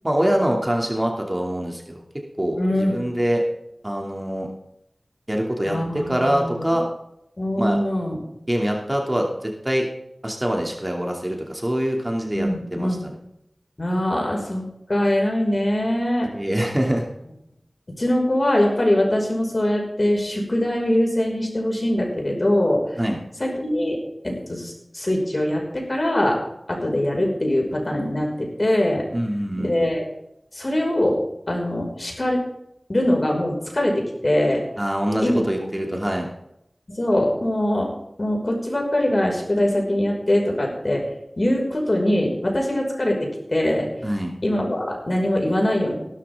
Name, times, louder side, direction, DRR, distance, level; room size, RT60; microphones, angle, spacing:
voice 1, 0.0-2.0 2.4-3.4 3.8-4.5 5.3-5.8 6.1-6.9 7.6-7.8 8.5-9.8 10.2-13.1 16.3-17.1 23.0-23.2 29.1-29.9 34.8-36.3 44.0-44.3, equal, 20° right, 1 dB, 2.8 m, -24 dB
voice 2, 2.6-3.0 5.7-6.8 7.4-8.2 12.3-13.0 13.8-16.3 18.0-22.8 23.4-24.0 24.2-26.4 26.7-29.0 29.6-30.1 30.5-31.2 31.5-32.4 32.9-34.6 35.2-35.4 36.9-37.9 38.2-41.0 41.4-43.2 43.5-43.9 44.4-45.9, left 1 dB, 45° left, 0 dB, 5.7 m, -22 dB
17.0 x 13.0 x 3.7 m, 0.80 s
wide cardioid pair, 55°, 0 cm